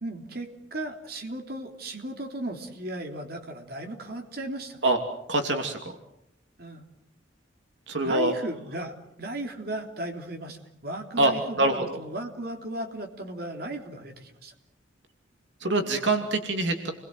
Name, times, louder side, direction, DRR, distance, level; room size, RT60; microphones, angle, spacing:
voice 1, 0.0-4.8 6.6-6.9 8.0-14.5, right 1 dB, 55° right, 4 dB, 3.4 m, -36 dB
voice 2, 5.3-5.9 7.9-8.3 11.2-11.3 11.6-12.0 15.6-16.9, right 2 dB, 75° right, 4 dB, 2.8 m, -24 dB
30.0 x 22.0 x 7.8 m, 0.77 s
head